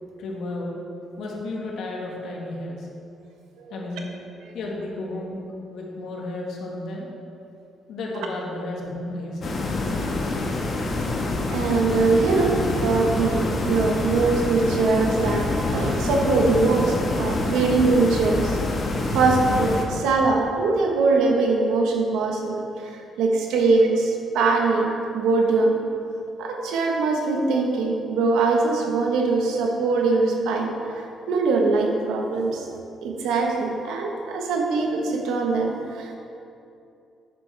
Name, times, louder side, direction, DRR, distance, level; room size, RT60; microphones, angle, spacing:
voice 1, 0.2-0.8 1.2-2.9 3.7-4.1 4.5-5.4 5.7-7.1 7.9-9.7, left 2 dB, 75° left, -1 dB, 1.6 m, -32 dB
sound 1, 9.4-19.8, left 2 dB, 50° left, 1.3 m, -26 dB
voice 2, 11.5-18.6 19.1-25.8 26.4-32.7 33.0-36.1, right 3 dB, 90° right, 1 dB, 1.2 m, -22 dB
9.8 x 8.3 x 3.4 m, 2.7 s
cardioid pair, 90°, 0 cm